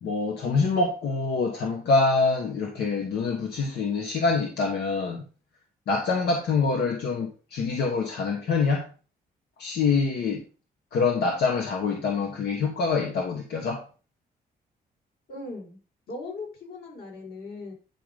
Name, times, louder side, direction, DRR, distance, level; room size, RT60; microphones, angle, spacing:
voice 1, 0.0-5.2 5.9-8.8 9.6-10.4 10.9-13.8, left 4 dB, 90° left, 1.4 m, -25 dB
voice 2, 15.3-15.8 16.1-17.7, left 3 dB, 70° left, 4.3 m, -38 dB
9.9 x 3.7 x 5.1 m
cardioid pair, 110°, 17 cm